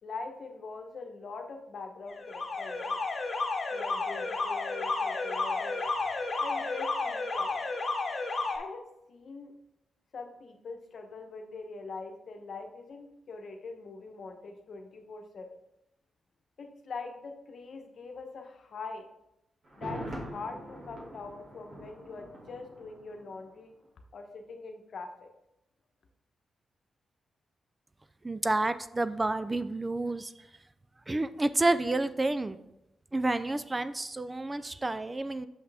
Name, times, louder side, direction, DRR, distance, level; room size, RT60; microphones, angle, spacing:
voice 1, 0.0-3.0 3.7-5.9 6.4-7.6 8.5-8.8 9.1-9.5 10.1-15.5 16.6-19.1 19.7-23.7 24.1-25.3, left 4 dB, 65° left, 5 dB, 0.9 m, -43 dB
Alarm, 2.1-8.6, left 3 dB, 45° left, 1.1 m, -32 dB
Thunder, 19.6-23.6 23.8-23.9, equal, 55° right, 2.0 m, -43 dB
voice 2, 28.2-30.3 31.1-32.6 33.1-35.5, right 2 dB, 25° right, 13 dB, 0.4 m, -29 dB
6.4 x 5.6 x 3.4 m, 0.84 s
cardioid pair, 75°, 0 cm